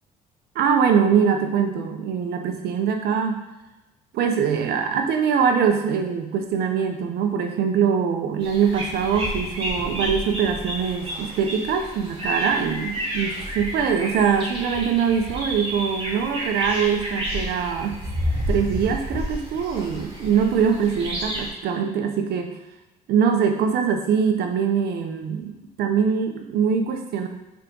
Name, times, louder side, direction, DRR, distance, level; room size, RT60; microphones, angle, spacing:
voice 1, 0.5-3.4 4.1-18.0 18.5-22.5 23.1-25.5 25.8-27.3, right 7 dB, 75° right, 5 dB, 1.0 m, -23 dB
sound 1, 8.4-21.5, equal, 30° right, 2.5 m, -30 dB
6.6 x 4.9 x 5.4 m, 1.0 s
cardioid pair, 110°, 17 cm